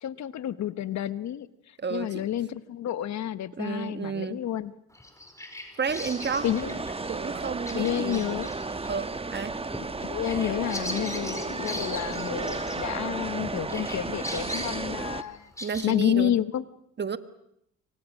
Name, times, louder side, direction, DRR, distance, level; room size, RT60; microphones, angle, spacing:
voice 1, 0.0-4.7 6.4-6.8 7.7-8.5 9.7-15.5 15.8-16.6, left 11 dB, 65° left, 15 dB, 1.1 m, -30 dB
voice 2, 1.8-2.2 3.6-4.5 5.8-6.5 7.1-8.3 8.9-9.6 15.6-16.3 17.0-17.2, right 6 dB, 35° right, 12 dB, 1.4 m, -31 dB
Bird vocalization bird call bird song, 4.9-13.4 13.7-15.8, left 1 dB, 10° left, 5.0 m, -40 dB
sound 1, 5.9-15.2, right 3 dB, 20° right, 1.3 m, -33 dB
27.5 x 25.0 x 6.4 m, 0.76 s
cardioid pair, 90°, 30 cm